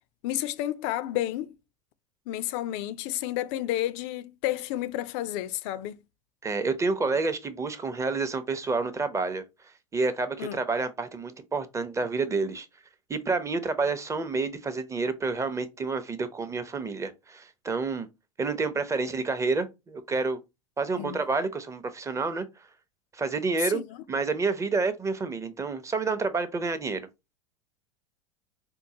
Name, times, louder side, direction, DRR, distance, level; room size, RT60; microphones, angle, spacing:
voice 1, 0.2-1.5 2.3-6.0 10.4-10.6 20.9-21.2 23.6-24.0, left 13 dB, 60° left, 0.4 m, -31 dB
voice 2, 6.4-9.4 9.9-12.7 13.1-18.1 18.4-20.4 20.8-22.5 23.1-23.8 24.1-27.1, right 4 dB, 15° right, 0.6 m, -29 dB
4.5 x 2.1 x 2.8 m
hypercardioid pair, 90°, 17 cm